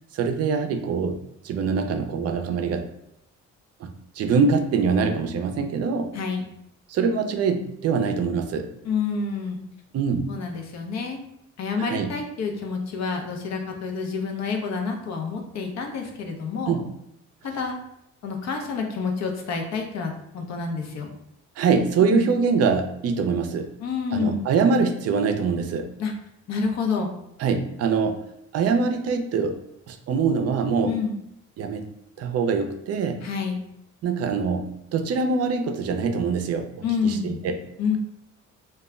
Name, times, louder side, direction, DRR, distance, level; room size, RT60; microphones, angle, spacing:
voice 1, 0.1-2.9 3.8-6.1 6.9-8.7 9.9-10.3 11.8-12.1 16.7-16.8 21.6-23.7 24.1-25.9 27.4-28.2 28.5-29.6 29.9-30.9 31.6-31.9 32.2-33.2 34.0-36.7 37.0-37.6, right 5 dB, 55° right, 7 dB, 0.4 m, -24 dB
voice 2, 6.1-6.5 8.8-9.6 10.3-11.2 11.6-16.8 17.4-17.8 18.2-21.1 22.0-22.3 23.8-24.4 26.0-26.1 26.5-27.1 30.8-31.2 33.2-33.6 36.8-37.4 37.8-38.0, left 5 dB, 60° left, 3 dB, 0.6 m, -28 dB
2.3 x 2.1 x 3.5 m, 0.77 s
cardioid pair, 90°, 30 cm